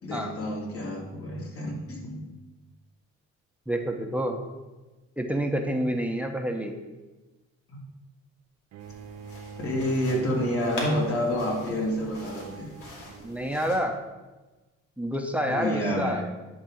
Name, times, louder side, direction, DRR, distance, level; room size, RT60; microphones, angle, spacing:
voice 1, 0.0-2.2 7.7-7.8 9.6-12.7 15.4-16.2, equal, 50° left, -2 dB, 3.0 m, -28 dB
voice 2, 3.7-4.4 5.2-6.7 13.2-14.0 15.0-16.2, equal, 5° right, 4 dB, 1.0 m, -28 dB
Bowed string instrument, 8.7-13.8, right 6 dB, 60° right, 0.7 m, -46 dB
sound 1, 8.8-13.8, left 1 dB, 80° left, 2.7 m, -43 dB
10.5 x 3.7 x 7.3 m, 1.2 s
cardioid pair, 90°, 30 cm